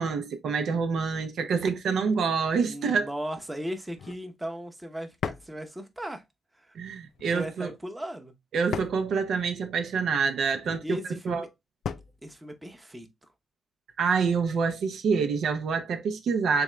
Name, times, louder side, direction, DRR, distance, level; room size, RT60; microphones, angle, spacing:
voice 1, 0.0-3.1 6.7-7.7 8.5-11.0 11.3-11.5 14.0-16.6, right 5 dB, 75° right, 0.6 m, -27 dB
voice 2, 2.6-6.2 6.6-6.7 7.3-8.3 10.8-11.5 12.2-13.1, equal, 10° right, 0.8 m, -37 dB
sound 1, 3.9-4.3 5.2-5.6 7.1-7.5 8.7-9.1 10.5-10.9 11.8-12.2, left 7 dB, 70° left, 0.4 m, -36 dB
3.6 x 3.5 x 3.1 m
cardioid pair, 100°, 0 cm